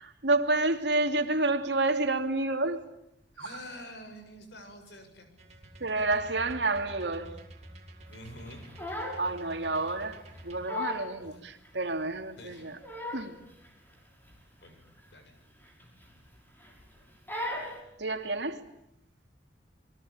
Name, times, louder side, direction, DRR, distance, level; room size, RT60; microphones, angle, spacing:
voice 1, 0.0-2.8 3.4-3.5 5.8-7.3 9.2-12.8 13.1-13.4 18.0-18.6, right 2 dB, 70° right, 2.8 m, -29 dB
voice 2, 3.3-5.3 8.1-8.6 11.2-11.4 12.4-12.6 14.6-14.8 15.1-15.3, left 1 dB, 65° left, 7.4 m, -47 dB
sound 1, 5.4-10.6, right 1 dB, 40° right, 4.9 m, -49 dB
Crying sobbing, 8.5-9.3 9.6-9.9 10.4-10.5 10.7-11.1 11.6-11.7 12.5-13.4 13.6-13.9 14.3-14.4 14.7-14.9 15.7-16.3 16.6-16.9 17.3-17.8, left 2 dB, 10° left, 6.3 m, -37 dB
29.5 x 23.0 x 8.7 m
head